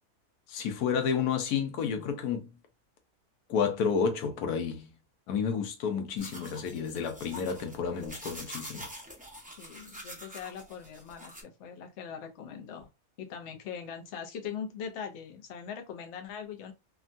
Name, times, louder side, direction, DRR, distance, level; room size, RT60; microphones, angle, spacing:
voice 1, 0.5-2.5 3.5-4.9 5.3-8.9, left 6 dB, 90° left, 1.2 m, -30 dB
sound 1, 6.2-11.4, equal, 10° right, 0.5 m, -45 dB
voice 2, 9.6-12.9 13.2-16.7, left 7 dB, 60° left, 0.9 m, -41 dB
3.5 x 2.2 x 2.5 m
omnidirectional pair, 1.6 m